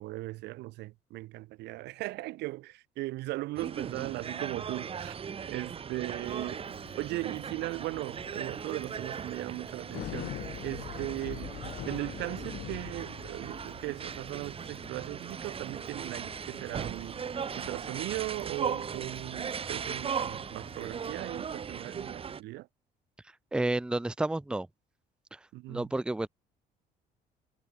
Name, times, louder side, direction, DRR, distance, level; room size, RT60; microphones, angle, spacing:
voice 1, 0.0-5.2 5.5-6.7 7.0-10.4 10.6-11.6 11.8-17.2 17.5-22.7 25.5-25.9, right 19 dB, 85° right, 1.1 m, -38 dB
sound 1, 3.6-22.4, right 7 dB, 35° right, 1.2 m, -38 dB
Bicycle, 6.3-21.1, left 14 dB, 70° left, 6.8 m, -47 dB
voice 2, 23.5-24.7 25.3-25.4 25.7-26.3, right 2 dB, 5° right, 0.6 m, -30 dB
cardioid pair, 110°, 17 cm